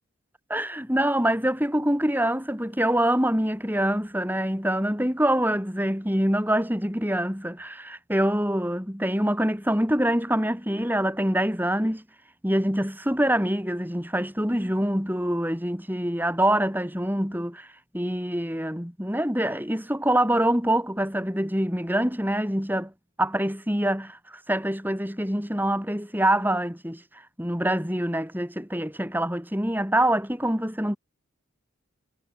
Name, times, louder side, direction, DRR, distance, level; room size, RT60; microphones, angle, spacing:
voice 1, 0.5-12.0 12.4-17.7 17.9-22.9 23.2-24.2 24.5-27.0 27.4-31.0, right 1 dB, 10° right, 7.6 m, -25 dB
head